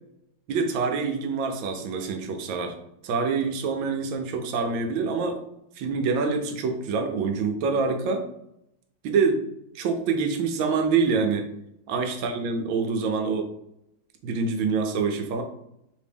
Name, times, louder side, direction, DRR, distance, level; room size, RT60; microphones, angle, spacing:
voice 1, 0.5-2.7 3.0-5.4 5.8-8.2 9.0-9.4 9.7-11.5 11.9-13.5 14.2-15.4, right 4 dB, 80° right, 4 dB, 1.3 m, -26 dB
3.3 x 3.1 x 3.4 m, 0.79 s
omnidirectional pair, 2.2 m